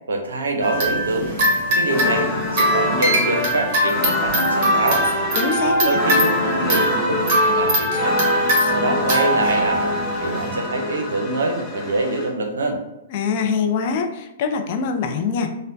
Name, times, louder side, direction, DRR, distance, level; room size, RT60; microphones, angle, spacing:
voice 1, 0.1-5.1 5.8-9.9 10.2-12.8, right 2 dB, 65° right, 3 dB, 0.6 m, -25 dB
sound 1, 0.6-10.6, right 1 dB, 35° right, 1.2 m, -22 dB
sound 2, 1.9-12.3, left 2 dB, 5° left, 0.7 m, -25 dB
voice 2, 5.4-6.0 13.1-15.5, left 5 dB, 45° left, 5 dB, 0.4 m, -23 dB
4.9 x 2.1 x 2.6 m, 0.94 s
figure-of-eight pair, 110°, 0 cm